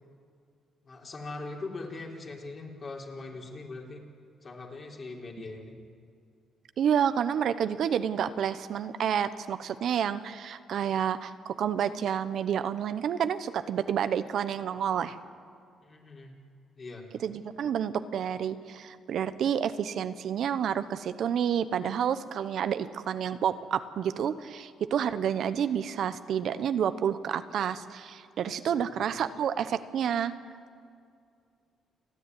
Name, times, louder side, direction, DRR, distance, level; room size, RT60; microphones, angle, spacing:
voice 1, 0.8-4.0 4.4-5.7 15.8-16.4 16.8-17.1 28.7-29.0, left 3 dB, 40° left, 0 dB, 3.8 m, -41 dB
voice 2, 6.8-15.2 17.2-30.3, right 8 dB, 70° right, 12 dB, 0.9 m, -29 dB
29.0 x 10.0 x 9.6 m, 2.3 s
cardioid pair, 90°, 0 cm